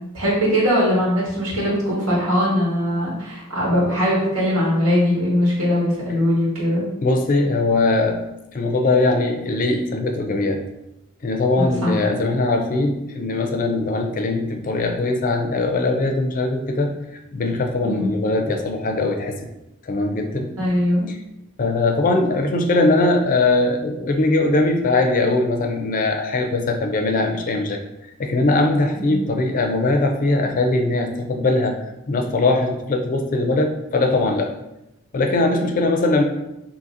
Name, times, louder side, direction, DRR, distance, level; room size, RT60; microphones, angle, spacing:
voice 1, 0.1-6.8 11.6-11.9 17.8-18.1 20.6-21.1 29.0-29.2, equal, 80° right, -6 dB, 1.5 m, -20 dB
voice 2, 7.0-8.2 8.5-10.6 11.2-16.9 17.3-19.4 19.8-20.5 21.6-27.8 28.2-31.8 32.1-34.5 35.1-36.2, left 2 dB, 40° left, 4 dB, 0.4 m, -20 dB
2.7 x 2.7 x 3.8 m, 0.91 s
head